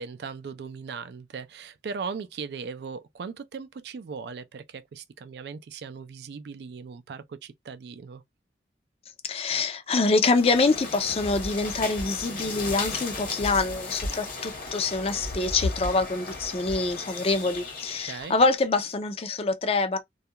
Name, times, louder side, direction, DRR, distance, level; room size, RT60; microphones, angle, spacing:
voice 1, 0.0-8.2 18.0-18.4, right 5 dB, 65° right, 0.3 m, -38 dB
voice 2, 9.2-20.0, left 3 dB, 35° left, 0.4 m, -25 dB
sound 1, 10.1-18.5, left 3 dB, 50° left, 1.0 m, -35 dB
2.3 x 2.2 x 2.7 m
head